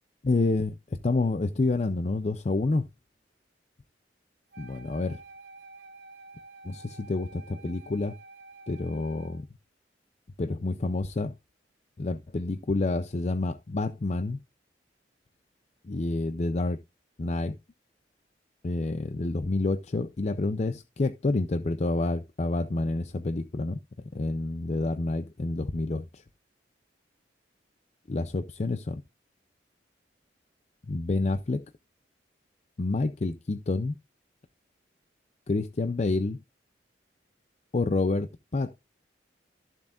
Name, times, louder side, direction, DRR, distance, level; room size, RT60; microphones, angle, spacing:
voice 1, 0.2-2.8 4.6-5.2 6.6-8.2 8.7-9.5 10.4-11.3 12.0-14.4 15.9-16.8 17.2-17.6 18.6-23.8 24.1-26.2 28.1-29.0 30.9-31.6 32.8-34.0 35.5-36.4 37.7-38.8, left 2 dB, 40° left, 0.5 m, -28 dB
Wind instrument woodwind instrument, 4.5-9.4, right 3 dB, 65° right, 1.9 m, -49 dB
14.0 x 7.1 x 2.5 m
head